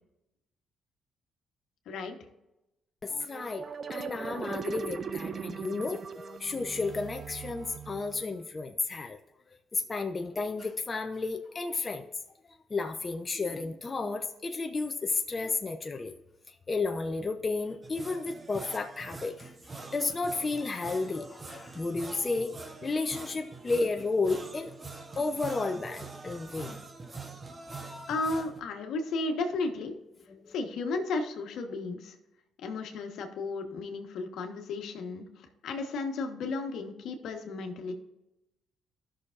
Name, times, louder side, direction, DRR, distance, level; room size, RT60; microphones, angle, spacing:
voice 1, 1.9-2.2 28.1-30.0 30.5-32.1 32.6-37.9, left 3 dB, 75° left, 5 dB, 1.3 m, -34 dB
voice 2, 3.0-9.2 9.7-12.1 12.7-16.1 16.5-19.5 19.8-22.5 22.8-24.7 25.2-26.8 27.8-28.1 30.3-30.5, left 3 dB, 30° left, 5 dB, 0.7 m, -32 dB
sound 1, 3.1-8.5, right 6 dB, 45° right, 0.5 m, -39 dB
sound 2, 17.8-28.6, right 3 dB, 30° right, 0.9 m, -45 dB
13.5 x 6.3 x 2.5 m, 0.94 s
cardioid pair, 90°, 0 cm